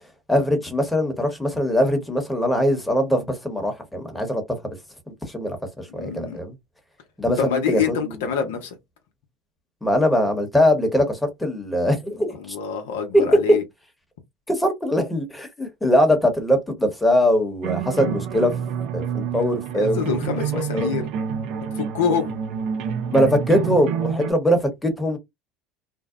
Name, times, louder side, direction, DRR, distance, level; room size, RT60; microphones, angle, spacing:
voice 1, 0.3-4.8 5.2-6.5 7.2-8.1 9.8-12.6 13.1-13.4 14.5-18.6 18.9-20.2 20.5-20.9 23.1-25.2, equal, 5° left, 1.0 m, -21 dB
voice 2, 5.9-6.4 7.4-8.8 12.4-13.6 19.7-21.1 21.7-22.4, left 7 dB, 85° left, 0.7 m, -26 dB
sound 1, 17.6-24.3, right 8 dB, 65° right, 0.4 m, -28 dB
2.6 x 2.0 x 2.4 m
hypercardioid pair, 90°, 0 cm